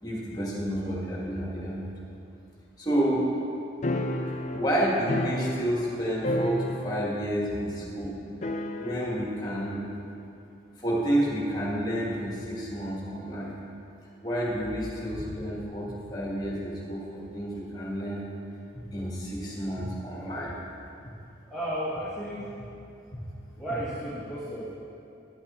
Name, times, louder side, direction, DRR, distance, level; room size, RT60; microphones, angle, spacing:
voice 1, 0.0-1.9 2.8-3.3 4.5-8.2 8.8-9.9 10.8-13.6 14.2-18.2 18.9-20.6, right 1 dB, 20° left, -4 dB, 1.6 m, -30 dB
sound 1, 3.8-6.0 6.2-7.2 7.5-7.6 8.4-9.2, left 1 dB, 35° left, 0.4 m, -31 dB
voice 2, 21.5-22.6 23.1-23.2 23.6-24.7, right 1 dB, ahead, -12 dB, 1.4 m, -34 dB
10.5 x 6.7 x 4.2 m, 2.7 s
head